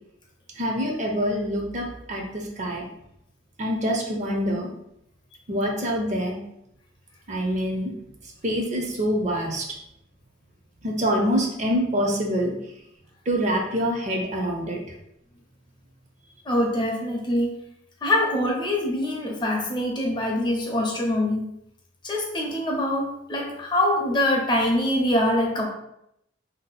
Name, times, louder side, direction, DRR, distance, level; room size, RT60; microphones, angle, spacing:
voice 1, 0.6-2.8 3.6-4.7 5.5-6.4 7.3-7.9 8.4-9.7 10.8-12.5 13.3-14.8, equal, 40° right, 1 dB, 0.5 m, -25 dB
voice 2, 16.5-17.5 18.0-21.5 22.0-25.7, left 1 dB, 25° left, 0 dB, 0.5 m, -24 dB
2.7 x 2.0 x 3.9 m, 0.79 s
head